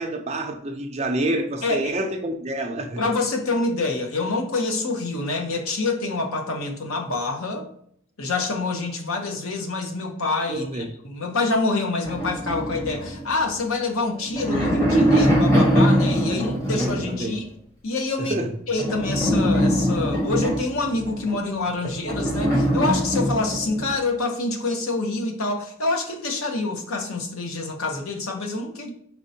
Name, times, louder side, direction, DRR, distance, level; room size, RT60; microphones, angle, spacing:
voice 1, 0.0-3.0 10.5-10.9 16.3-17.4 18.2-18.5 21.8-21.9, right 1 dB, 30° right, 5 dB, 0.5 m, -28 dB
voice 2, 1.6-1.9 3.0-7.7 8.2-17.4 17.8-18.4 18.7-28.9, left 3 dB, 90° left, 3 dB, 0.9 m, -26 dB
sound 1, 12.0-13.6 14.2-17.3 18.8-21.4 22.0-23.9, equal, 15° left, 1.2 m, -22 dB
4.5 x 4.3 x 2.7 m, 0.67 s
head